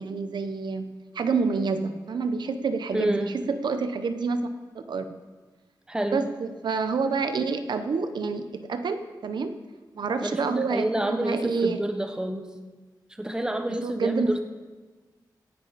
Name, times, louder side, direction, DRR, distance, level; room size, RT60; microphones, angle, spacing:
voice 1, 0.0-4.5 4.7-5.2 6.1-9.6 9.9-11.8 13.7-14.3, right 4 dB, 80° right, 9 dB, 0.8 m, -28 dB
voice 2, 2.9-3.4 5.9-6.3 10.2-12.5 13.2-14.4, right 1 dB, 10° right, 6 dB, 1.0 m, -28 dB
17.0 x 10.5 x 4.1 m, 1.3 s
wide cardioid pair, 115°, 8 cm